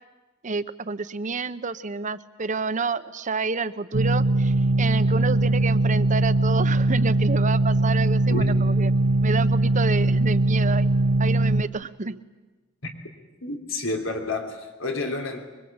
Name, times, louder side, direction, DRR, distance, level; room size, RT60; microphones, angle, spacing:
voice 1, 0.4-8.9 9.2-10.9 11.2-12.2, right 4 dB, 40° right, 13 dB, 0.9 m, -29 dB
sound 1, 3.9-11.6, right 2 dB, 85° right, 0.7 m, -21 dB
voice 2, 13.4-15.4, left 2 dB, 90° left, 4 dB, 3.4 m, -29 dB
24.5 x 23.0 x 8.8 m, 1.2 s
head